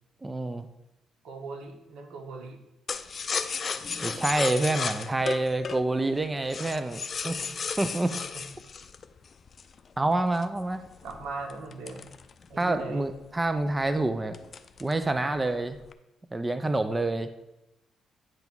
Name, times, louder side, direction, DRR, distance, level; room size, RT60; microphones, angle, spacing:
voice 1, 0.2-0.7 4.0-7.4 7.8-8.2 10.0-10.8 12.6-14.4 14.8-15.8 16.3-17.3, right 2 dB, 20° right, 10 dB, 0.5 m, -27 dB
voice 2, 1.2-2.6 8.1-8.4 11.0-12.1 12.5-13.1, right 3 dB, 85° right, 4 dB, 1.2 m, -39 dB
sound 1, 2.9-9.8 10.3-12.8 13.2-13.3 13.6-13.9 14.3-15.1 15.4-15.9, left 5 dB, 45° left, 0.5 m, -34 dB
9.0 x 3.5 x 6.0 m, 0.93 s
cardioid pair, 90°, 0 cm